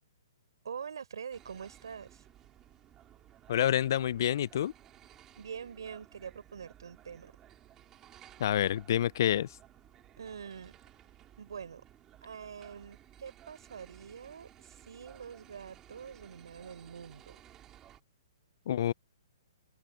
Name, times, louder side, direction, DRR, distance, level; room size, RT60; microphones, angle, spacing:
voice 1, 0.6-2.2 5.4-7.3 10.2-10.8 11.4-11.8 12.2-17.2, right 7 dB, 80° right, 3.8 m, -45 dB
sound 1, 1.3-18.0, right 11 dB, 20° right, 3.9 m, -57 dB
voice 2, 3.5-4.7 8.4-9.6 18.7-18.9, left 11 dB, 55° left, 0.4 m, -28 dB
open air
hypercardioid pair, 155°, 2 cm